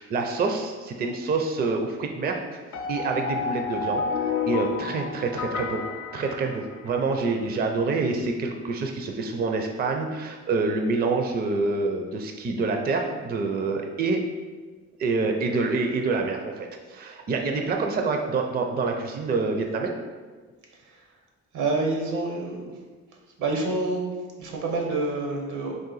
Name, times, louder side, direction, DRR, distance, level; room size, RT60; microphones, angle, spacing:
voice 1, 0.0-2.4 2.9-4.0 4.5-5.8 6.1-14.2 15.0-20.0, right 3 dB, 30° right, 3 dB, 0.4 m, -27 dB
sound 1, 2.7-7.0, left 5 dB, 80° left, 0.6 m, -30 dB
voice 2, 21.5-22.7 23.4-24.0 24.4-25.7, right 2 dB, 80° right, 1 dB, 0.9 m, -27 dB
3.8 x 2.5 x 3.9 m, 1.4 s
cardioid pair, 90°, 30 cm